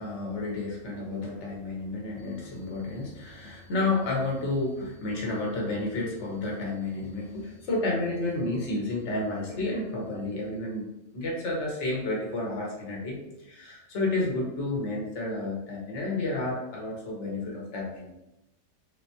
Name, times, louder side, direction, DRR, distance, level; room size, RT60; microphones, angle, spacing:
voice 1, 0.0-18.1, left 2 dB, 55° left, -2 dB, 1.3 m, -31 dB
3.8 x 3.4 x 2.8 m, 0.90 s
omnidirectional pair, 1.5 m